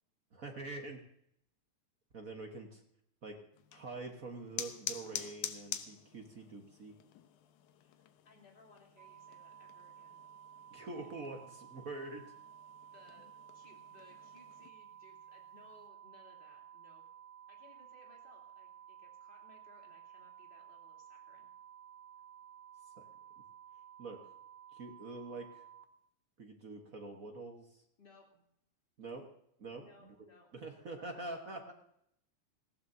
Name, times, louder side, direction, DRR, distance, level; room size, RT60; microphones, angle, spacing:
voice 1, 0.3-1.0 2.1-2.8 3.2-3.4 3.7-7.0 10.7-12.3 23.0-23.1 24.0-24.2 24.7-25.6 26.4-27.8 29.0-29.3 29.6-30.1 30.5-31.7, right 2 dB, 50° right, 3 dB, 0.9 m, -45 dB
sound 1, 3.5-14.7, left 10 dB, 90° left, 2.4 m, -48 dB
voice 2, 8.2-10.2 10.9-11.1 12.9-17.0 17.5-21.5 28.0-28.5 29.7-30.5, left 2 dB, 15° left, -1 dB, 2.9 m, -63 dB
sound 2, 9.0-25.8, right 9 dB, 70° right, 2.2 m, -55 dB
19.5 x 15.5 x 2.7 m, 0.74 s
omnidirectional pair, 3.4 m